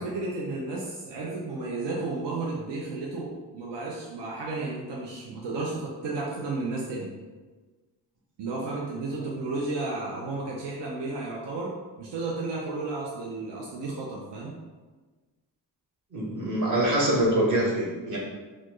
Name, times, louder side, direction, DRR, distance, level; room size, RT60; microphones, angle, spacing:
voice 1, 0.0-7.2 8.4-14.6, right 3 dB, 75° right, -3 dB, 0.7 m, -33 dB
voice 2, 16.1-18.2, right 1 dB, 45° right, -5 dB, 1.3 m, -24 dB
4.1 x 2.5 x 3.0 m, 1.3 s
cardioid pair, 80°, 42 cm